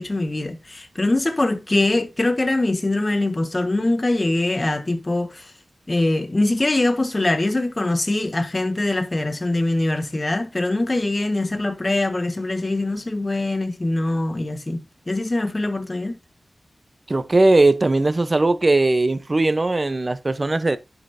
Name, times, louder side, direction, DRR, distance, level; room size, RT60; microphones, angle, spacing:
voice 1, 0.0-5.5 5.9-14.8 15.1-16.2, left 2 dB, 35° left, 1.4 m, -23 dB
voice 2, 17.1-20.8, right 2 dB, 40° right, 0.8 m, -19 dB
10.5 x 5.6 x 2.7 m
cardioid pair, 50°, 0 cm